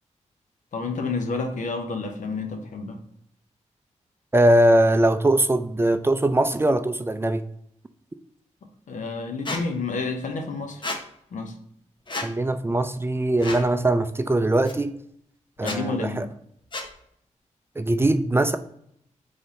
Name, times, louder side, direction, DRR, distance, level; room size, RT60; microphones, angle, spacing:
voice 1, 0.7-3.0 8.9-10.8 11.3-11.5 15.6-16.3, left 4 dB, 80° left, 0.8 m, -30 dB
voice 2, 4.3-7.4 12.2-14.9 15.6-16.3 17.8-18.6, right 1 dB, 20° right, 0.4 m, -21 dB
Squeak, 9.4-9.6 10.8-11.0 12.1-12.3 13.4-13.7 14.6-14.7 15.6-15.8 16.7-16.9, left 2 dB, 40° left, 0.8 m, -31 dB
3.9 x 3.3 x 4.1 m
cardioid pair, 65°, 13 cm